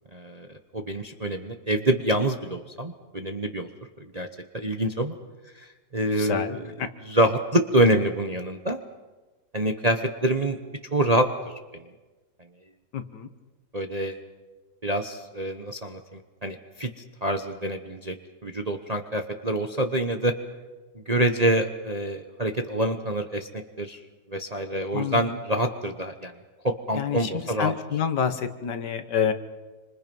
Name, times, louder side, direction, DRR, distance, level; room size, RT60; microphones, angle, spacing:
voice 1, 0.1-0.5 0.7-3.7 4.1-4.3 4.5-5.2 5.6-5.7 5.9-6.6 7.0-8.8 9.5-10.6 10.9-11.8 13.7-14.2 14.8-16.9 17.2-18.2 18.4-20.3 20.9-24.0 24.3-26.3 26.6-27.7, right 1 dB, 25° right, 6 dB, 0.9 m, -26 dB
voice 2, 6.2-6.9 12.9-13.3 24.9-25.2 26.9-29.3, left 7 dB, 65° left, 10 dB, 1.8 m, -28 dB
27.5 x 25.5 x 5.5 m, 1.2 s
omnidirectional pair, 2.0 m